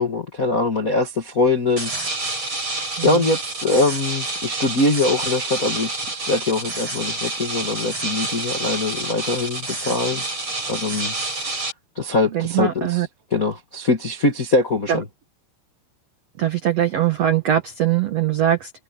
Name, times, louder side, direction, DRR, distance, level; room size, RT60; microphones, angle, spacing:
voice 1, 0.0-1.9 3.0-10.2 10.7-11.6 11.9-13.0 13.3-15.0, left 3 dB, 60° left, 0.8 m, -22 dB
sound 1, 1.8-11.7, right 2 dB, 30° right, 8.4 m, -28 dB
voice 2, 12.3-13.1 14.9-15.0 16.4-18.7, right 11 dB, 80° right, 1.4 m, -21 dB
omnidirectional pair, 4.9 m